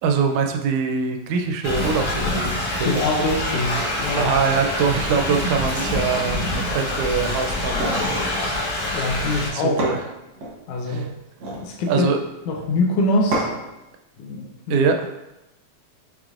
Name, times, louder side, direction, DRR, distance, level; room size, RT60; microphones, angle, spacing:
voice 1, 0.0-3.1 4.2-8.3 9.5-10.0 10.9-11.1 11.9-12.3 14.7-15.1, right 5 dB, 80° right, 4 dB, 1.9 m, -23 dB
Thunder / Rain, 1.6-9.5, left 1 dB, 60° left, 1.3 m, -25 dB
voice 2, 2.9-4.3 8.9-9.8 10.7-11.1 11.6-12.1 12.5-13.5 14.2-14.8, left 2 dB, 80° left, 0 dB, 1.9 m, -24 dB
sound 1, 7.7-8.1 9.3-9.4 9.8-10.6 11.2-11.7 13.3-13.7, right 1 dB, 65° right, 1.2 m, -27 dB
6.3 x 3.2 x 2.4 m, 0.93 s
omnidirectional pair, 3.4 m